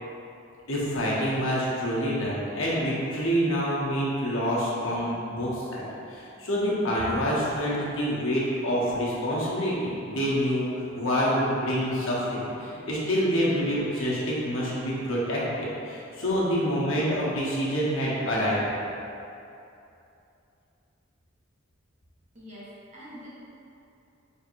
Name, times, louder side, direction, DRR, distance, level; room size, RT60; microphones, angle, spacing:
voice 1, 0.7-10.7 10.9-18.6, equal, 75° left, -6 dB, 0.9 m, -27 dB
voice 2, 22.3-23.3, equal, 35° right, -9 dB, 1.0 m, -45 dB
3.6 x 2.5 x 4.4 m, 2.7 s
head